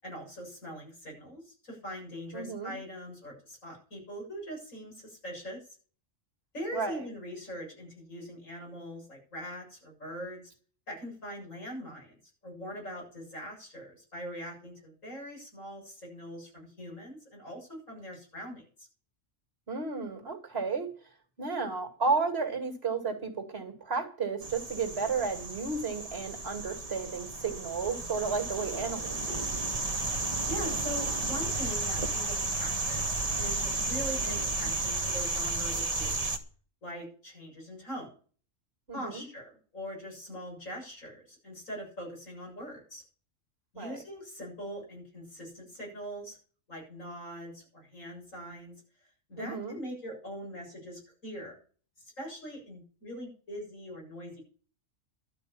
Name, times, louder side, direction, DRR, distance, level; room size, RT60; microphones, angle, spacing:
voice 1, 0.0-5.6 6.5-10.4 10.9-12.2 12.4-18.9 30.1-36.3 36.8-38.2 38.9-43.0 43.7-46.4 46.7-48.7 49.3-51.6 52.0-54.4, equal, 80° left, -1 dB, 7.9 m, -42 dB
voice 2, 2.3-2.8 6.7-7.0 19.7-20.9 21.4-29.4 38.9-39.2 43.8-44.0 49.4-49.8, right 4 dB, 50° right, 5 dB, 2.8 m, -33 dB
sound 1, 24.4-36.4, right 3 dB, 30° right, 1.5 m, -33 dB
12.5 x 5.9 x 8.8 m, 0.40 s
omnidirectional pair, 1.3 m